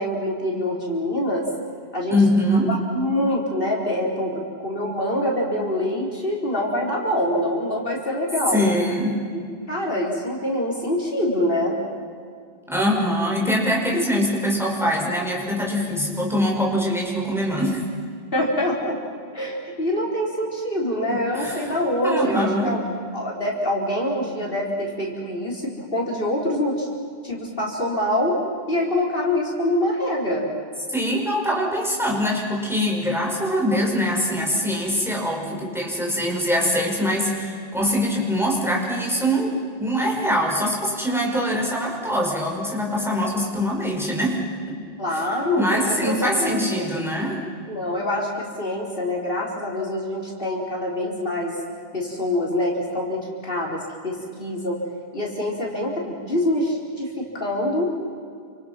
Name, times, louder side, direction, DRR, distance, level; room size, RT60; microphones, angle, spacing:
voice 1, 0.0-1.5 1.9-2.2 2.5-8.6 9.7-11.8 18.3-19.0 19.3-22.8 23.1-26.9 27.2-28.4 28.7-30.5 45.0-46.9 47.7-51.5 51.9-54.8 55.1-57.9, left 1 dB, 60° left, -2 dB, 4.7 m, -25 dB
voice 2, 2.1-2.7 8.5-9.2 12.7-17.9 21.1-21.7 22.0-22.8 30.9-39.5 39.8-44.8 45.1-45.2 45.6-47.4, equal, ahead, -2 dB, 5.4 m, -23 dB
29.5 x 27.5 x 6.1 m, 2.3 s
omnidirectional pair, 1.1 m